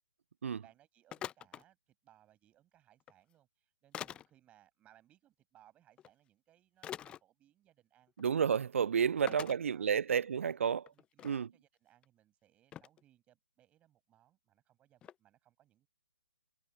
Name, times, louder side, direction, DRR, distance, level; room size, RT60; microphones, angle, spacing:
voice 1, 0.4-8.1 8.5-8.6 8.9-9.9 10.3-10.6 10.9-15.9, right 12 dB, 15° right, 6.2 m, -67 dB
sound 1, 1.1-1.6 3.0-3.1 3.9-4.3 6.0-6.1 6.8-7.2 8.1-8.2 8.5-8.6 9.3-9.6 10.3-10.4 10.7-11.3 12.0-12.1 12.7-13.0 15.0-15.1, left 10 dB, 10° left, 0.8 m, -44 dB
voice 2, 8.2-10.9 11.2-11.5, right 7 dB, 55° right, 0.4 m, -31 dB
figure-of-eight pair, 135°, 9 cm